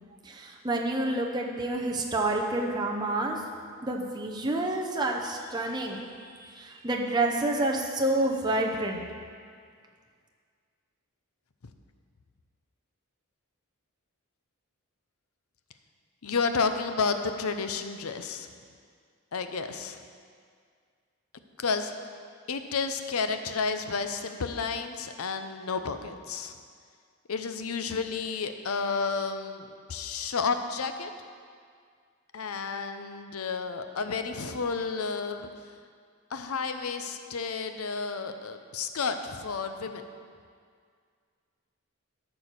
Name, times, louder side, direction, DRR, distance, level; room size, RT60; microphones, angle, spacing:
voice 1, 0.2-3.4 3.8-9.0, right 2 dB, 20° right, 0 dB, 0.8 m, -29 dB
voice 2, 16.2-18.5 19.3-20.0 21.6-21.9 22.5-26.6 27.3-31.1 32.3-35.5 36.3-40.1, left 4 dB, 85° left, 8 dB, 0.7 m, -31 dB
13.5 x 4.6 x 6.7 m, 2.1 s
head